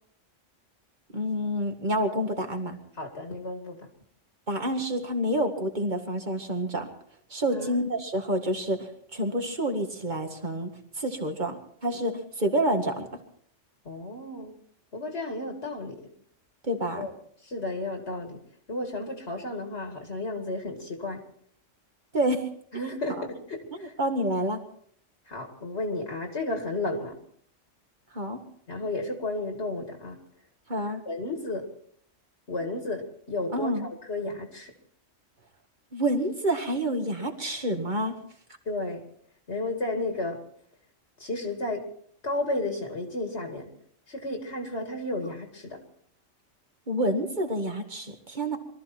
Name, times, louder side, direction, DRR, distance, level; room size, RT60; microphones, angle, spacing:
voice 1, 1.1-2.8 4.5-6.9 7.3-10.7 11.0-13.1 16.6-17.1 22.1-22.4 23.2-23.3 23.8-24.6 28.1-28.4 30.7-31.0 33.5-33.9 35.9-38.1 46.9-48.6, right 1 dB, 40° right, 5 dB, 2.1 m, -28 dB
voice 2, 3.0-3.9 7.5-7.8 13.8-14.5 14.9-16.1 17.0-17.1 17.4-18.4 18.7-21.2 22.7-23.9 25.3-27.2 28.7-30.2 31.1-31.7 32.5-34.7 38.7-39.0 39.5-40.4 41.2-41.9 42.2-43.7 44.1-45.8, left 2 dB, 55° left, 3 dB, 2.5 m, -33 dB
23.0 x 14.0 x 4.4 m, 0.63 s
omnidirectional pair, 1.3 m